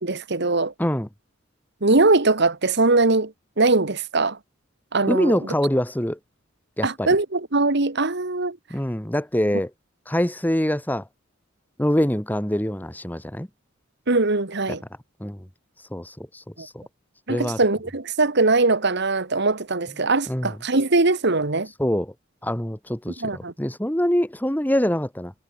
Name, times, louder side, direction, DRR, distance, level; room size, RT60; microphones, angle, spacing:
voice 1, 0.0-0.7 1.8-4.4 4.9-5.4 6.8-8.6 14.1-14.8 16.6-16.7 17.3-21.7 23.2-23.5, right 3 dB, 55° right, 1.6 m, -21 dB
voice 2, 5.1-6.2 6.8-7.1 8.7-9.7 10.1-11.0 11.8-13.5 15.2-15.4 15.9-16.8 17.3-17.6 20.3-20.5 21.8-22.1 22.4-25.3, equal, 10° left, 1.7 m, -24 dB
head